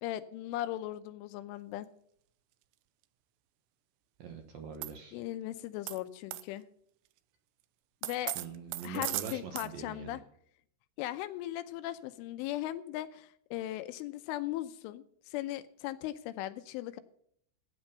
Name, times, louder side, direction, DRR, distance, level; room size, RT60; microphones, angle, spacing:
voice 1, 0.0-1.9 5.1-6.6 8.0-8.4 8.8-10.2 11.0-17.0, left 14 dB, 85° left, 11 dB, 3.2 m, -38 dB
voice 2, 4.2-5.2 8.4-10.2, right 6 dB, 70° right, 5 dB, 2.3 m, -43 dB
sound 1, 4.8-4.9 5.9-6.0 6.3-6.4 8.0-9.7, right 16 dB, 90° right, 2.4 m, -36 dB
16.0 x 9.1 x 5.5 m, 0.67 s
omnidirectional pair, 5.7 m